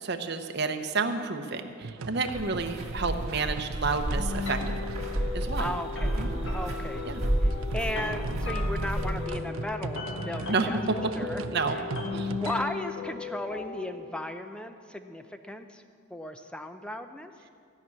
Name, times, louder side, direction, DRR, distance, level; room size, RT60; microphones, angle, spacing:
voice 1, 0.0-4.6 5.3-5.7 6.2-6.4 7.0-7.2 10.5-11.0 11.5-11.8 12.1-12.3, right 4 dB, 50° right, 6 dB, 0.9 m, -30 dB
sound 1, 1.8-12.7, right 4 dB, 75° right, 0.5 m, -39 dB
sound 2, 2.3-9.3, right 1 dB, 30° right, 2.3 m, -31 dB
sound 3, 4.1-13.9, left 4 dB, 65° left, 1.9 m, -37 dB
voice 2, 5.6-7.1 7.4-10.8 11.1-11.4 11.7-11.8 12.3-15.8 16.1-17.3, left 1 dB, 5° left, 8 dB, 0.5 m, -36 dB
15.5 x 6.0 x 9.6 m, 2.3 s
head